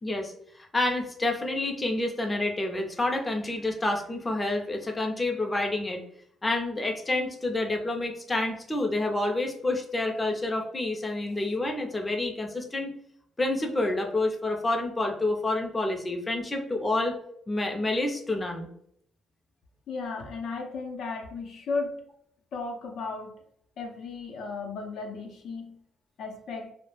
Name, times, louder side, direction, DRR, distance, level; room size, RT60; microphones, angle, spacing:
voice 1, 0.0-0.3 0.6-6.0 6.4-12.9 13.4-17.2 17.5-18.7, left 2 dB, 20° left, 3 dB, 0.5 m, -28 dB
voice 2, 19.9-22.0 22.5-23.3 23.8-25.8 26.2-26.7, left 4 dB, 70° left, 2 dB, 0.5 m, -35 dB
2.2 x 2.0 x 3.1 m, 0.67 s
cardioid pair, 90°, 0 cm